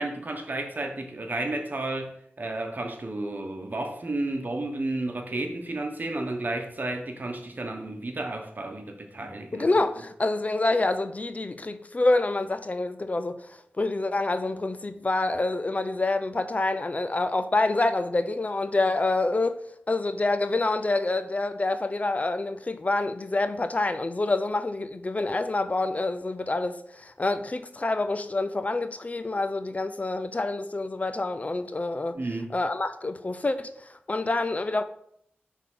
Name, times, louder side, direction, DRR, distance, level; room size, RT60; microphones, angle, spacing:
voice 1, 0.0-9.7 32.1-32.5, right 2 dB, 50° right, 1.1 m, -32 dB
voice 2, 9.5-13.5 13.8-32.2 32.5-34.8, left 2 dB, 40° left, 0.5 m, -27 dB
5.7 x 3.6 x 5.6 m
wide cardioid pair, 55°, 4 cm